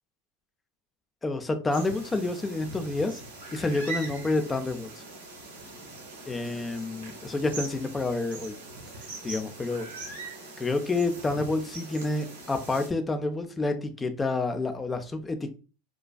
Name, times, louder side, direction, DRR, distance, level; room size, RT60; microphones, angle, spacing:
voice 1, 1.2-3.2 3.5-5.0 6.3-8.5 9.2-9.9 10.6-15.5, left 2 dB, 15° left, 0.4 m, -29 dB
sound 1, 1.7-12.9, right 3 dB, 90° right, 0.7 m, -42 dB
2.4 x 2.3 x 2.2 m
hypercardioid pair, 95°, 0 cm